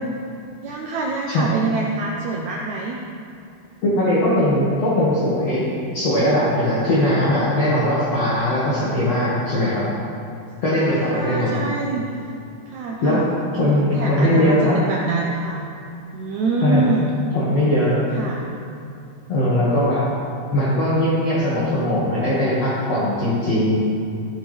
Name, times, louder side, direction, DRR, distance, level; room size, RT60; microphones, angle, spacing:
voice 1, 0.6-3.0 8.3-8.4 10.8-12.0 12.7-13.2 13.6-15.6 16.1-17.1 18.1-18.5, right 3 dB, 80° right, -2 dB, 1.6 m, -26 dB
voice 2, 3.8-5.6 5.9-9.8 10.6-11.6 13.0-13.2 13.5-14.7 16.6-16.8 17.3-18.0 19.3-20.0 20.5-23.7, left 1 dB, 50° left, -9 dB, 2.7 m, -20 dB
15.5 x 11.5 x 3.4 m, 2.5 s
omnidirectional pair, 4.5 m